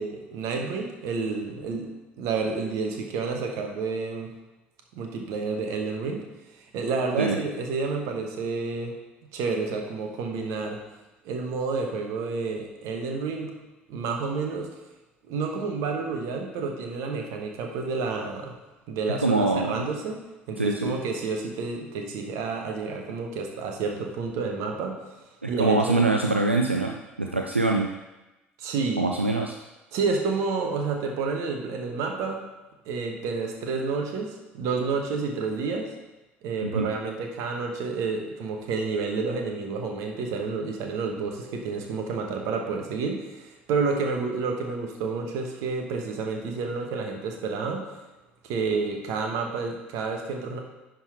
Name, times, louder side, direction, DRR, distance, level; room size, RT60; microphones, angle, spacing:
voice 1, 0.0-1.9 2.2-4.3 4.9-6.2 6.7-8.9 9.3-10.8 11.2-13.5 13.9-14.7 15.3-18.5 18.9-20.2 20.5-25.0 25.5-26.0 28.6-29.0 29.9-32.4 32.8-35.9 36.4-47.9 48.4-50.6, right 4 dB, 55° right, 3 dB, 1.2 m, -29 dB
voice 2, 19.1-19.9 20.6-20.9 25.4-27.9 29.0-29.5 36.6-36.9, right 2 dB, 90° right, 2 dB, 0.3 m, -24 dB
10.5 x 3.9 x 4.5 m, 1.0 s
figure-of-eight pair, 60°, 6 cm